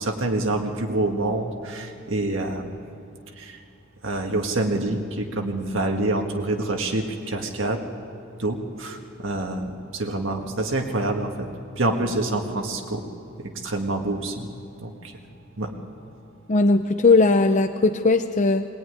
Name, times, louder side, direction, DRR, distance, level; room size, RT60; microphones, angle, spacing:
voice 1, 0.0-2.8 3.4-3.6 4.0-7.8 8.4-11.5 11.8-13.0 13.6-14.5 14.8-15.1 15.6-15.7, right 2 dB, 65° right, 3 dB, 1.7 m, -26 dB
voice 2, 16.5-18.7, left 3 dB, 35° left, 7 dB, 0.7 m, -18 dB
22.0 x 18.0 x 9.6 m, 2.5 s
head